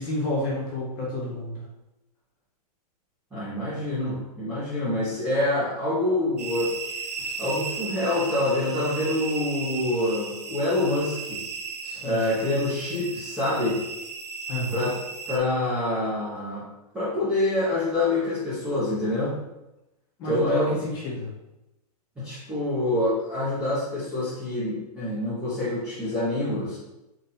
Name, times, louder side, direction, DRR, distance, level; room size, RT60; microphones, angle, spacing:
voice 1, 0.0-1.6 7.2-7.4 11.8-12.2 14.5-14.9 20.2-21.3, left 1 dB, 20° left, -5 dB, 1.1 m, -30 dB
voice 2, 3.3-6.7 7.4-11.4 12.0-13.8 14.7-15.0 15.3-16.6 16.9-19.3 20.2-20.8 22.2-26.8, left 1 dB, 5° right, -12 dB, 0.7 m, -26 dB
sound 1, 6.4-15.4, right 5 dB, 90° right, 0.8 m, -36 dB
3.9 x 2.5 x 4.1 m, 0.96 s
hypercardioid pair, 170°, 20 cm